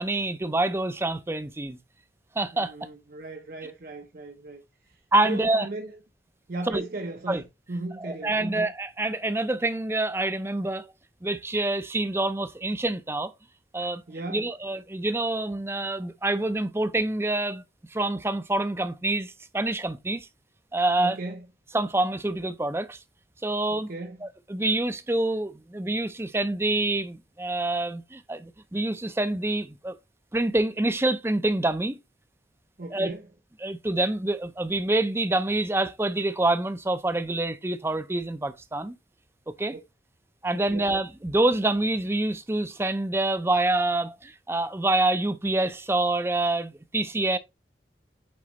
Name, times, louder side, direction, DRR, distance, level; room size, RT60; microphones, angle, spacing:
voice 1, 0.0-1.8 2.4-2.7 5.1-5.7 6.7-6.8 7.3-7.4 8.0-10.9 11.2-13.3 13.7-14.0 14.3-17.6 17.9-20.3 20.7-21.2 21.7-23.0 23.4-23.9 24.2-29.9 30.3-32.0 32.9-33.1 33.6-38.9 39.5-39.8 40.4-47.4, right 2 dB, 15° right, 0.5 m, -26 dB
voice 2, 2.5-5.9 6.5-7.4 7.7-8.7 14.1-14.5 21.0-21.5 23.7-24.2 32.8-33.3 39.7-39.8 40.5-40.8, right 2 dB, 55° right, 0.7 m, -37 dB
8.6 x 3.8 x 3.0 m
head